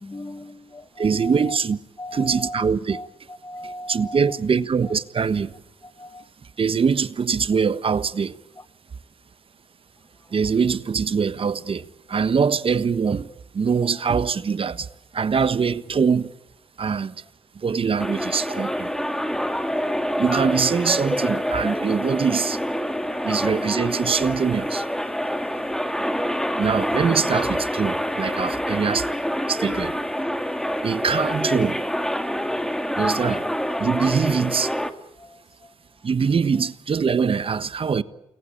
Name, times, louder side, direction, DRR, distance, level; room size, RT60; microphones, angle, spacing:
voice 1, 0.0-1.6 2.0-4.4 4.8-4.9 5.8-6.3 8.6-8.7 23.0-23.7 25.5-25.8 32.5-32.7 33.1-33.5 34.1-34.2 35.2-35.7, left 1 dB, 25° left, 1.2 m, -39 dB
voice 2, 1.0-1.8 2.1-3.0 3.6-5.5 6.6-8.4 10.3-13.3 13.5-14.9 15.1-16.3 16.8-17.1 17.5-18.9 20.2-22.6 23.2-24.9 26.6-29.1 29.5-30.0 30.8-31.8 33.0-33.4 33.8-34.7 36.0-38.0, right 6 dB, 50° right, 1.3 m, -23 dB
sound 1, 18.0-34.9, equal, 5° left, 2.3 m, -26 dB
29.0 x 21.0 x 8.7 m
cardioid pair, 65°, 12 cm